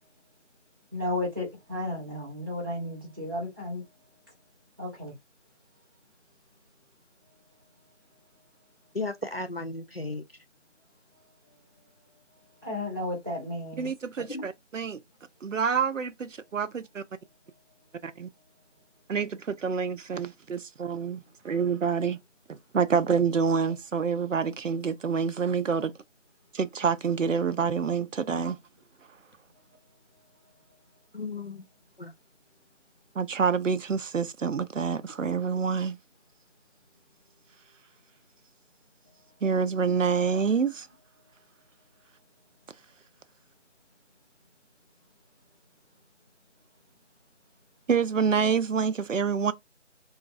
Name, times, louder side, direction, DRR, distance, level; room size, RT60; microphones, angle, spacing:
voice 1, 0.9-3.8 4.8-5.1 12.6-13.9, left 1 dB, 20° right, 1.3 m, -33 dB
voice 2, 8.9-10.2 14.3-14.5 31.1-31.6 32.0-32.1, left 3 dB, 50° left, 0.4 m, -35 dB
voice 3, 13.8-15.0 15.4-17.0 18.0-18.3 19.1-22.2 22.5-25.9 26.5-28.6 33.2-36.0 39.4-40.9 47.9-49.5, right 6 dB, 80° right, 0.6 m, -27 dB
3.7 x 2.4 x 2.4 m
figure-of-eight pair, 175°, 38 cm